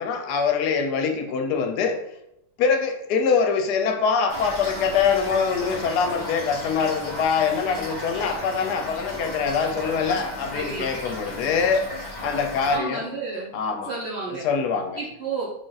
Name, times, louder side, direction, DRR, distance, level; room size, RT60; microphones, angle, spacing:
voice 1, 0.0-2.0 2.6-13.1 13.5-13.9 14.3-15.0, left 5 dB, 75° left, 5 dB, 1.1 m, -24 dB
Toilet flush / Fill (with liquid), 4.3-12.8, left 1 dB, 20° left, 0.6 m, -35 dB
voice 2, 10.5-10.9 12.7-13.5 13.9-14.5 14.9-15.5, right 4 dB, 50° right, -5 dB, 0.9 m, -31 dB
3.5 x 2.5 x 3.9 m, 0.80 s
omnidirectional pair, 1.8 m